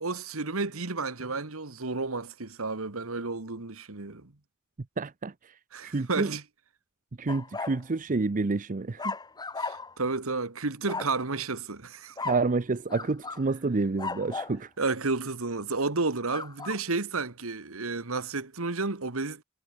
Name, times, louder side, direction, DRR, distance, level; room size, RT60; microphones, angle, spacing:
voice 1, 0.0-4.3 5.7-6.4 9.6-12.1 14.8-19.4, right 3 dB, 70° right, 1.7 m, -31 dB
voice 2, 5.0-5.3 5.8-6.3 7.2-9.1 12.2-14.7, right 3 dB, 40° right, 0.6 m, -28 dB
sound 1, 7.3-7.8 9.0-10.0 10.9-11.2 12.2-12.5 12.9-13.5 14.0-14.6 16.3-16.8, left 4 dB, 20° left, 1.1 m, -36 dB
head